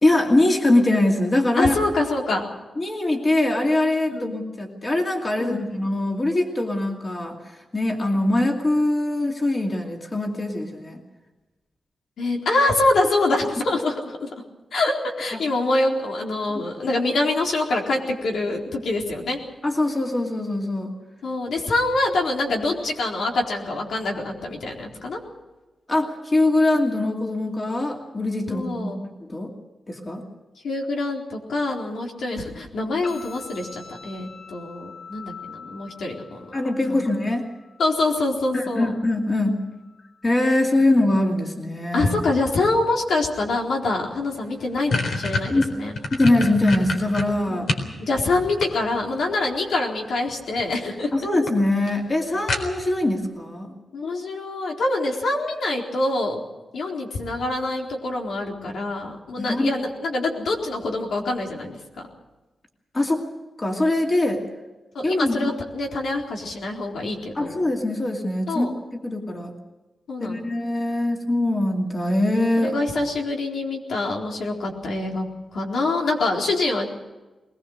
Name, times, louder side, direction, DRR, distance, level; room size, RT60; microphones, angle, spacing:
voice 1, 0.0-1.7 2.8-7.4 7.7-11.0 15.3-15.4 19.6-20.9 25.9-29.5 29.9-30.2 36.5-37.5 38.5-39.6 40.2-42.1 45.5-45.6 46.1-47.7 51.1-53.7 59.4-59.7 62.9-63.3 63.6-64.4 65.0-65.5 67.3-69.5 70.2-72.7, left 1 dB, 25° left, 1 dB, 2.5 m, -22 dB
voice 2, 1.6-2.4 4.1-4.3 5.4-5.7 12.2-14.3 14.7-19.4 21.2-25.2 28.5-29.0 30.6-36.5 36.9-37.0 37.8-38.9 41.9-45.9 47.5-51.1 53.9-56.4 56.7-61.8 64.9-67.6 68.5-68.7 70.1-70.5 72.6-75.3 75.5-76.9, left 2 dB, 85° left, 0 dB, 4.1 m, -25 dB
sound 1, 33.0-41.0, left 5 dB, 50° left, 5.1 m, -45 dB
sound 2, 44.0-44.1 44.4-47.9 48.3-49.2 50.3-50.7 51.0-51.1 51.5-51.6 51.9-52.0 52.5-53.0, left 3 dB, 70° left, 4.2 m, -27 dB
22.0 x 20.5 x 6.5 m, 1.1 s
wide cardioid pair, 180°, 0 cm